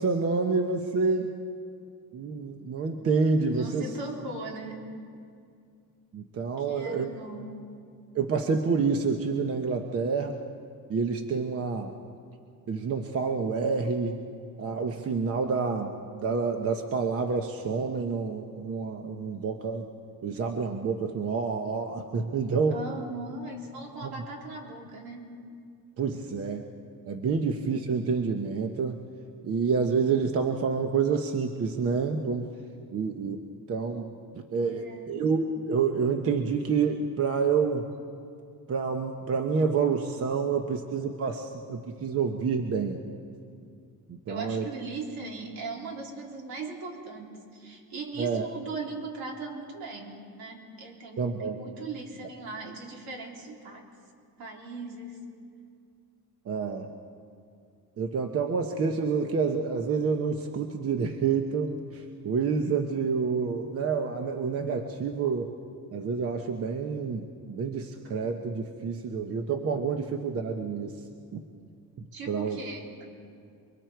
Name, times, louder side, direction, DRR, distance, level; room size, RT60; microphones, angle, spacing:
voice 1, 0.0-1.3 2.1-3.8 6.1-7.1 8.1-10.4 10.9-11.9 12.7-14.2 14.6-19.9 20.2-22.8 26.0-26.6 27.1-29.0 29.4-32.5 32.9-33.4 33.7-37.9 38.7-43.0 44.1-44.6 48.2-48.5 51.2-51.6 56.5-56.9 58.0-65.5 65.9-71.0 71.3-71.4 72.3-72.6, right 5 dB, 35° right, 4 dB, 1.0 m, -28 dB
voice 2, 3.5-4.9 6.6-7.7 22.7-25.4 34.6-35.2 40.3-41.5 44.3-53.8 54.4-55.2 72.1-72.9, right 3 dB, 70° right, -1 dB, 3.9 m, -39 dB
29.0 x 23.0 x 4.6 m, 2.3 s
cardioid pair, 165°, 38 cm